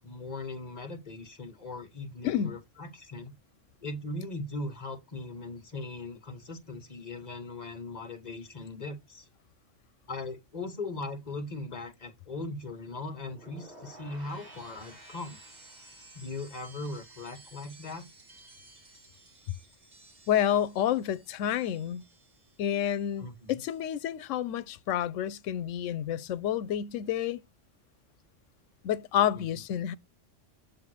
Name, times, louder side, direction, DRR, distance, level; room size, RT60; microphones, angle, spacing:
voice 1, 0.0-3.3 3.8-9.2 10.1-15.4 16.1-18.1 23.2-23.6 29.4-29.5, left 2 dB, 35° left, 1.4 m, -39 dB
voice 2, 2.2-2.6 20.3-22.0 22.6-27.4 28.8-29.9, left 10 dB, 85° left, 1.0 m, -29 dB
sound 1, 13.2-23.3 23.5-24.0, right 2 dB, 35° right, 2.0 m, -54 dB
7.5 x 3.6 x 4.8 m
omnidirectional pair, 1.3 m